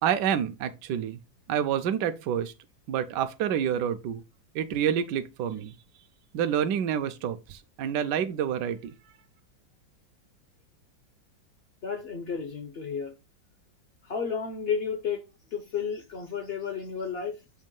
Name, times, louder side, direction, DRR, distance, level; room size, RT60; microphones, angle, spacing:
voice 1, 0.0-1.2 1.5-2.5 2.9-4.2 4.5-5.7 6.3-8.9, right 9 dB, 70° right, 1.1 m, -28 dB
voice 2, 11.8-13.2 14.0-15.2 15.5-17.4, left 6 dB, 65° left, 0.6 m, -32 dB
6.4 x 3.0 x 5.2 m
omnidirectional pair, 2.1 m